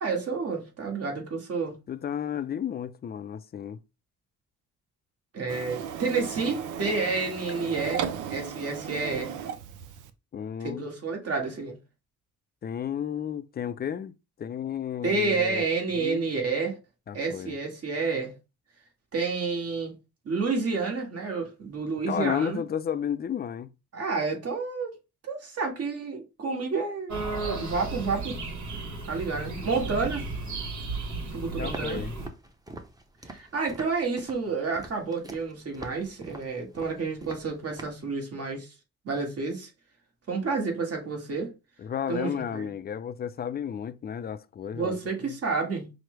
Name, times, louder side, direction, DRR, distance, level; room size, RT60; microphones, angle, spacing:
voice 1, 0.0-1.8 5.3-9.3 10.6-11.8 15.0-16.8 17.1-18.3 19.1-20.0 20.3-22.6 23.9-24.9 25.2-27.1 27.6-28.4 29.1-30.3 31.3-32.0 33.3-38.7 39.1-39.7 40.3-41.5 42.1-42.6 44.7-45.9, right 4 dB, 50° right, 1.6 m, -30 dB
voice 2, 1.9-3.8 10.3-10.9 12.6-14.1 14.4-15.6 15.9-16.3 17.1-17.6 22.1-23.7 31.5-32.2 41.8-45.0, left 8 dB, 35° left, 0.4 m, -32 dB
Printer, 5.5-10.1, right 8 dB, 85° right, 0.5 m, -35 dB
sound 1, 27.1-32.3, right 3 dB, 70° right, 1.4 m, -34 dB
Walk footsteps, 31.7-38.0, right 2 dB, 10° right, 0.8 m, -44 dB
5.8 x 2.1 x 3.2 m
cardioid pair, 90°, 30 cm